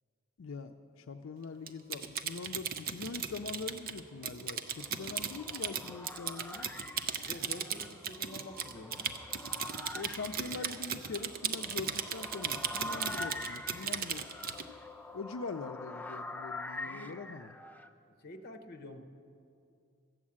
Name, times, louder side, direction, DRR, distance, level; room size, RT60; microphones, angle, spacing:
voice 1, 0.4-6.7 9.9-14.4 15.1-17.5, left 4 dB, 90° left, 7 dB, 0.5 m, -43 dB
Typing, 1.7-14.7, right 7 dB, 50° right, 0.6 m, -37 dB
sound 1, 4.5-17.9, left 2 dB, 10° left, 0.4 m, -45 dB
voice 2, 7.3-9.1 16.8-17.2 18.2-19.0, left 1 dB, 50° left, 6 dB, 0.9 m, -47 dB
13.5 x 7.3 x 8.6 m, 2.5 s
head